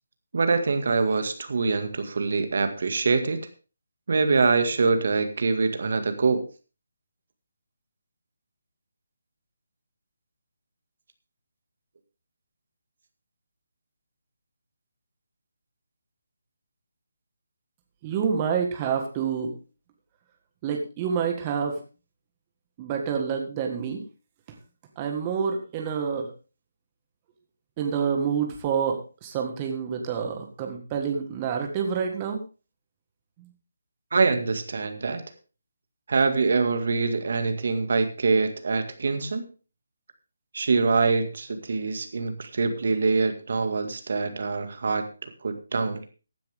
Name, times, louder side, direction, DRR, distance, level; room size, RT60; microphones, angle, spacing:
voice 1, 0.3-3.4 4.1-6.4 34.1-35.2 36.1-39.4 40.5-46.0, right 4 dB, 60° right, 8 dB, 2.0 m, -24 dB
voice 2, 18.0-19.5 20.6-21.8 22.8-24.0 25.0-26.3 27.8-32.4 33.4-33.5, right 6 dB, 20° right, 3 dB, 1.7 m, -28 dB
15.0 x 10.5 x 3.6 m, 0.33 s
hypercardioid pair, 165°, 0 cm